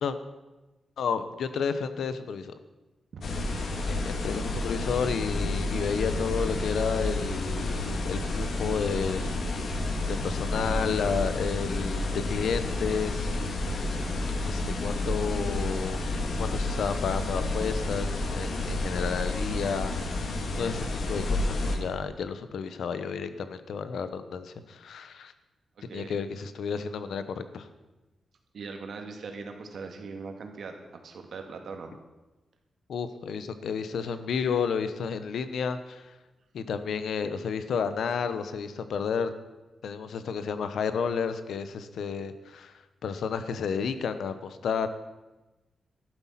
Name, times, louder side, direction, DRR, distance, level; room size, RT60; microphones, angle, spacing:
voice 1, 1.0-2.5 4.0-9.4 9.6-9.8 10.1-13.8 14.4-16.0 16.4-25.3 25.8-27.7 32.9-36.1 36.5-39.3 39.8-44.9, left 6 dB, 80° left, 11 dB, 1.0 m, -31 dB
sound 1, 3.2-21.8, left 2 dB, 60° left, 1.9 m, -30 dB
voice 2, 28.5-31.9, right 4 dB, 65° right, 4 dB, 2.0 m, -40 dB
12.5 x 11.5 x 5.8 m, 1.1 s
wide cardioid pair, 140°, 0 cm